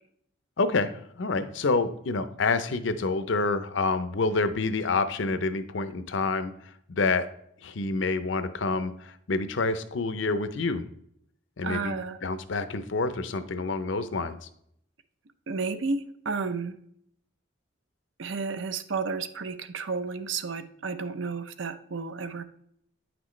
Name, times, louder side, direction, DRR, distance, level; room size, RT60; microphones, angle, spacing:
voice 1, 0.6-0.9 1.2-6.5 6.9-7.3 7.6-10.8 11.6-12.0 12.2-14.4, left 3 dB, 65° left, 11 dB, 0.6 m, -27 dB
voice 2, 11.6-12.2 15.5-16.8 18.2-22.4, right 4 dB, 70° right, 11 dB, 0.6 m, -32 dB
9.3 x 6.0 x 3.1 m, 0.69 s
head